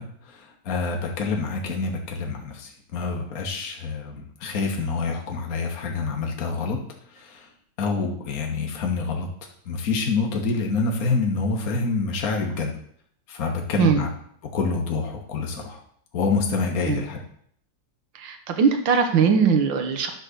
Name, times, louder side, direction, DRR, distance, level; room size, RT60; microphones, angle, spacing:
voice 1, 0.0-6.8 7.1-7.5 7.8-9.3 9.7-12.7 13.3-14.1 14.5-15.8 16.1-17.2, left 4 dB, 55° left, 1 dB, 1.6 m, -27 dB
voice 2, 18.2-20.1, right 6 dB, 90° right, 6 dB, 1.8 m, -20 dB
11.0 x 4.0 x 6.6 m, 0.64 s
omnidirectional pair, 2.0 m